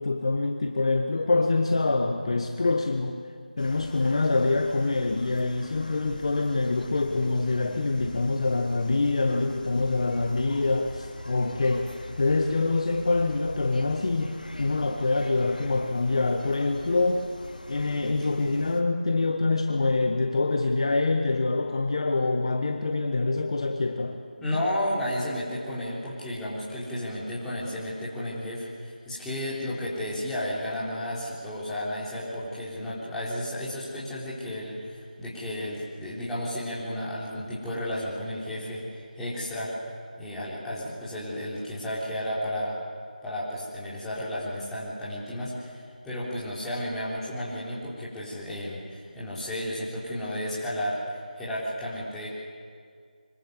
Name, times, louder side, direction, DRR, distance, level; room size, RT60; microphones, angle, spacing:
voice 1, 0.0-3.2 3.6-11.9 12.2-17.3 17.7-24.2, left 3 dB, 40° left, 4 dB, 1.6 m, -25 dB
sound 1, 3.6-18.8, left 1 dB, 65° left, 3.4 m, -43 dB
voice 2, 24.4-39.7 40.2-42.8 43.2-52.3, left 1 dB, 5° left, -9 dB, 4.4 m, -33 dB
25.0 x 25.0 x 8.2 m, 2.1 s
figure-of-eight pair, 165°, 5 cm